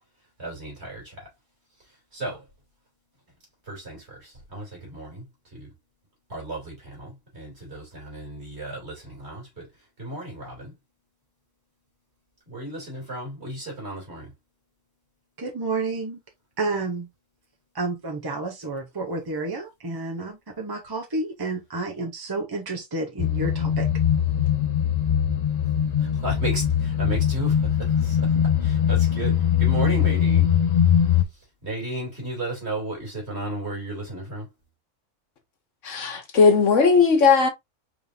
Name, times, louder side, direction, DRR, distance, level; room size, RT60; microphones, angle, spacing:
voice 1, 0.4-1.3 1.8-2.5 3.6-5.7 6.3-10.8 12.5-14.3 26.0-30.5 31.3-34.5, right 1 dB, 55° right, 3.0 m, -34 dB
voice 2, 15.4-16.2 16.6-17.1 17.7-23.9, right 3 dB, 25° right, 0.5 m, -30 dB
sound 1, 23.2-31.2, left 9 dB, 50° left, 0.5 m, -21 dB
voice 3, 35.8-37.5, left 5 dB, 75° left, 1.4 m, -17 dB
4.9 x 3.6 x 2.6 m
omnidirectional pair, 1.3 m